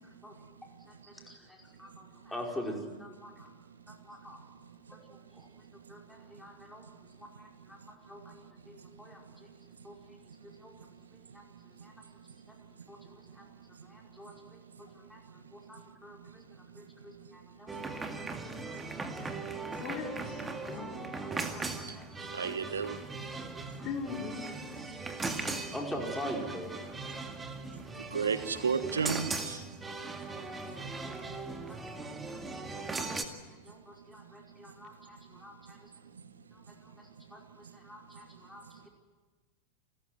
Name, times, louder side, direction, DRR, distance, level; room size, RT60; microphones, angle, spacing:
voice 1, 0.0-3.5 3.9-4.4 4.9-9.5 9.8-12.0 12.5-12.6 12.9-13.5 13.8-19.8 20.4-22.9 23.3-23.9 24.4-27.0 28.2-28.3 29.8-35.7 36.5-38.9, equal, 5° left, 0 dB, 5.1 m, -47 dB
sound 1, 17.7-33.2, right 3 dB, 15° right, 2.1 m, -39 dB
voice 2, 19.8-21.1 23.8-24.7, left 6 dB, 40° left, 1 dB, 4.7 m, -40 dB
voice 3, 22.3-23.0 28.1-29.6, right 5 dB, 70° right, 13 dB, 1.2 m, -31 dB
29.0 x 14.5 x 9.5 m, 1.4 s
figure-of-eight pair, 90°, 0 cm